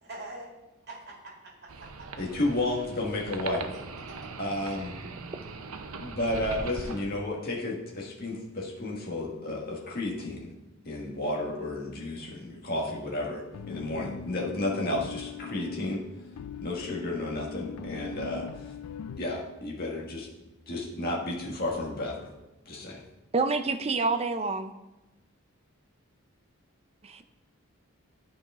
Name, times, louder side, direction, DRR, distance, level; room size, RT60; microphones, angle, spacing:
voice 1, 0.0-0.5 0.9-2.1 3.7-4.3, right 2 dB, 50° right, -2 dB, 2.2 m, -45 dB
sound 1, 1.7-7.0, right 4 dB, 75° right, 0.7 m, -40 dB
voice 2, 2.2-3.6 4.4-4.9 6.0-10.5 10.8-16.0 16.6-18.7 19.2-20.3 20.7-22.3 22.6-23.0, left 2 dB, 45° left, -2 dB, 1.5 m, -32 dB
sound 2, 13.5-19.2, left 6 dB, 85° left, 0.4 m, -41 dB
voice 3, 23.3-24.7 27.0-27.2, right 4 dB, 25° right, 9 dB, 0.4 m, -27 dB
11.0 x 4.8 x 3.6 m, 1.0 s
head